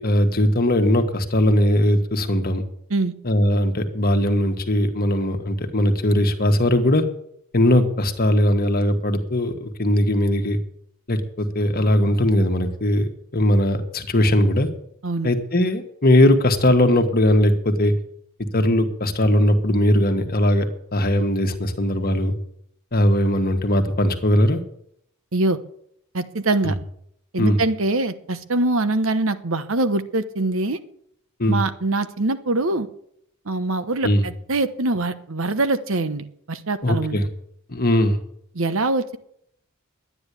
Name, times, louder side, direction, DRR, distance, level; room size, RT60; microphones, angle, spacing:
voice 1, 0.0-2.6 3.2-7.0 7.5-10.6 11.1-14.7 15.2-17.9 18.5-22.3 22.9-24.6 27.4-27.6 31.4-31.6 34.0-34.2 36.8-37.3 37.7-38.2, left 1 dB, 45° left, 6 dB, 1.6 m, -19 dB
voice 2, 26.1-26.8 27.3-30.8 31.5-32.9 33.4-37.2 38.5-39.2, right 2 dB, 65° right, 11 dB, 1.0 m, -23 dB
11.5 x 9.7 x 8.3 m, 0.70 s
head